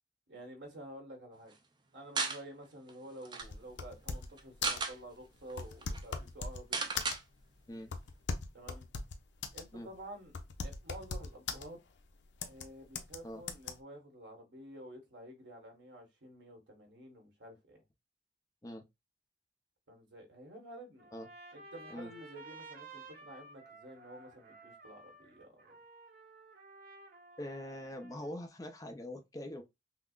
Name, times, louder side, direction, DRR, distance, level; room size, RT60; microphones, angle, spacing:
voice 1, 0.3-1.5 1.9-6.9 8.5-8.9 9.5-10.4 10.6-11.8 12.5-17.8 19.9-21.1 21.5-25.7, right 1 dB, 80° right, 1.4 m, -50 dB
sound 1, 2.2-2.4 2.9-3.0 3.2-3.5 4.4-5.0 5.5-5.6 5.8-6.0 6.7-7.2, right 4 dB, 25° right, 0.5 m, -34 dB
sound 2, 3.4-4.4 4.6-4.9 5.5-6.6 7.0-7.4 7.9-9.7 9.9-10.0 10.3-11.6 12.4-12.7 13.0-13.2 13.5-13.7, left 4 dB, 80° left, 0.6 m, -39 dB
Trumpet, 21.0-28.3, right 3 dB, 55° right, 0.9 m, -54 dB
voice 2, 27.4-29.6, left 1 dB, 20° left, 0.6 m, -43 dB
5.7 x 2.0 x 2.4 m
head